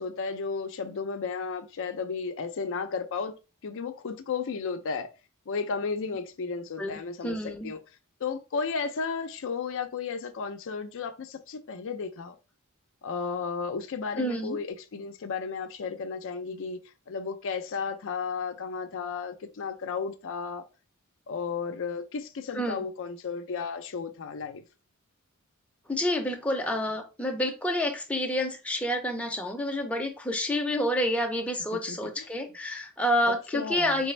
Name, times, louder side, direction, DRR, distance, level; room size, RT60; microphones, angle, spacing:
voice 1, 0.0-3.4 3.6-5.1 5.5-7.8 8.2-12.4 13.0-16.8 17.1-20.6 21.3-24.6 31.9-32.3 33.3-34.0, left 5 dB, 60° left, 0.5 m, -33 dB
voice 2, 7.2-7.7 14.2-14.6 22.5-22.8 25.9-34.1, left 1 dB, 5° left, 0.6 m, -28 dB
4.2 x 3.3 x 3.2 m
head